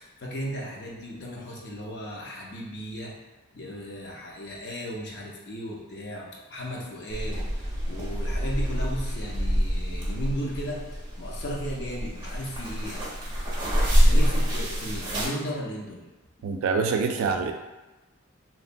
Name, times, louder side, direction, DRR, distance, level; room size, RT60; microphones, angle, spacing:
voice 1, 0.0-3.1 3.5-13.3 13.6-16.0, equal, 55° left, -2 dB, 0.5 m, -36 dB
sound 1, 7.1-15.3, equal, 20° right, 0.5 m, -26 dB
voice 2, 16.4-17.5, right 5 dB, 90° right, 5 dB, 0.3 m, -25 dB
3.0 x 2.1 x 2.5 m, 1.1 s
head